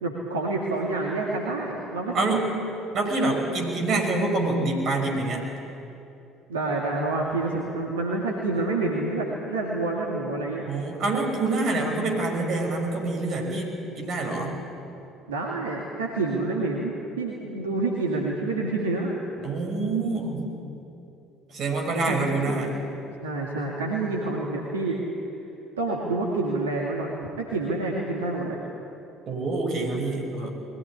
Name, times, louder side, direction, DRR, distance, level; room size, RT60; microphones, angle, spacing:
voice 1, 0.0-2.4 6.5-10.7 15.3-19.2 22.1-22.6 23.2-25.0 25.8-28.6, right 2 dB, 80° right, -2 dB, 2.2 m, -28 dB
voice 2, 2.1-2.5 2.9-5.4 10.6-14.6 19.4-20.5 21.5-22.8 29.3-30.5, right 2 dB, 45° right, 2 dB, 5.8 m, -26 dB
21.5 x 17.0 x 9.9 m, 2.8 s
figure-of-eight pair, 55°, 0 cm